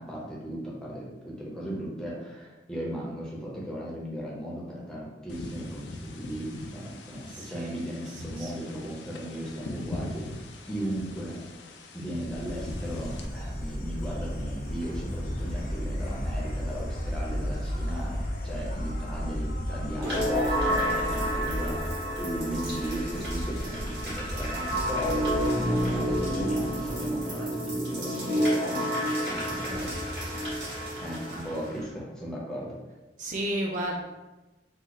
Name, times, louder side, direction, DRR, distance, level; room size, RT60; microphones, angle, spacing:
voice 1, 0.0-11.7 11.9-29.9 31.0-32.8, right 1 dB, 5° left, -5 dB, 0.7 m, -37 dB
sound 1, 5.3-13.3, left 2 dB, 80° left, 0.4 m, -41 dB
voice 2, 7.3-7.8 8.4-8.5 29.1-29.5 31.2-31.5 33.2-34.0, right 1 dB, 45° right, 0 dB, 0.4 m, -33 dB
Insect, 12.2-27.3, equal, 55° left, 0.7 m, -34 dB
sound 2, 20.0-31.8, equal, 65° right, 1.5 m, -29 dB
3.1 x 2.1 x 3.9 m, 1.1 s
head